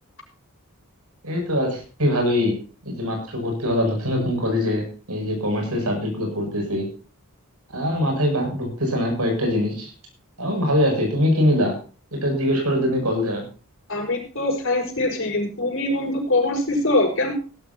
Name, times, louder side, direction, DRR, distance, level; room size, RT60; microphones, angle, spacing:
voice 1, 1.2-2.6 2.9-6.9 7.7-9.9 10.4-11.7 12.1-13.5, left 1 dB, 85° right, 3 dB, 7.9 m, -23 dB
voice 2, 13.9-17.3, left 2 dB, 60° left, 1 dB, 5.7 m, -23 dB
17.5 x 13.0 x 2.9 m, 0.37 s
head